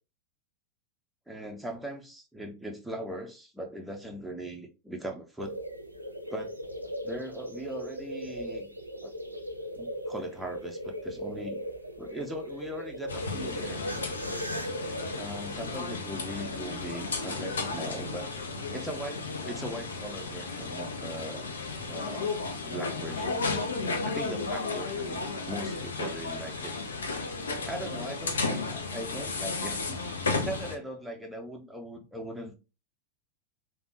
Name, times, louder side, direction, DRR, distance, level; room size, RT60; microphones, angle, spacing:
voice 1, 1.3-5.5 6.3-6.5 7.0-8.7 9.0-9.1 9.8-11.6 12.0-13.8 15.1-18.3 18.7-21.5 21.9-22.3 22.7-23.5 24.0-26.7 27.7-30.0 30.4-32.5, right 1 dB, 5° right, 0.5 m, -39 dB
sound 1, 5.4-16.4, equal, 85° right, 0.4 m, -38 dB
sound 2, 13.1-30.7, left 3 dB, 70° left, 0.5 m, -34 dB
3.3 x 2.2 x 2.6 m
figure-of-eight pair, 90°, 0 cm